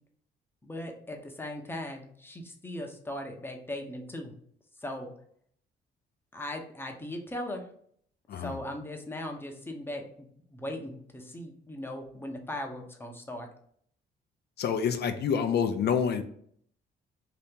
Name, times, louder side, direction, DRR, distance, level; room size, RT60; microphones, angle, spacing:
voice 1, 0.6-4.3 4.8-5.1 6.3-7.7 8.4-13.5, left 1 dB, 10° left, 3 dB, 0.7 m, -38 dB
voice 2, 14.6-16.2, left 7 dB, 55° left, 9 dB, 0.4 m, -27 dB
2.8 x 2.7 x 3.5 m, 0.63 s
cardioid pair, 90°, 20 cm